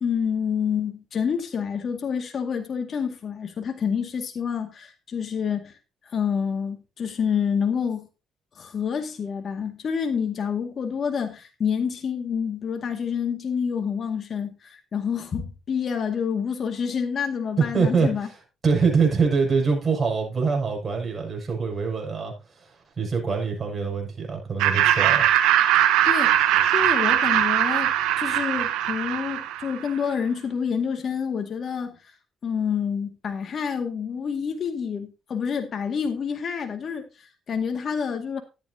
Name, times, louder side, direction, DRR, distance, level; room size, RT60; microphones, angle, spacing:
voice 1, 0.0-5.8 6.0-8.1 8.6-18.3 26.1-32.0 32.4-38.4, left 7 dB, 50° left, 2.0 m, -28 dB
voice 2, 17.6-18.3 18.6-25.3, right 5 dB, 35° right, 6.6 m, -24 dB
Laughter, 24.6-29.9, right 11 dB, 90° right, 1.2 m, -21 dB
13.0 x 10.5 x 2.8 m
cardioid pair, 75°, 0 cm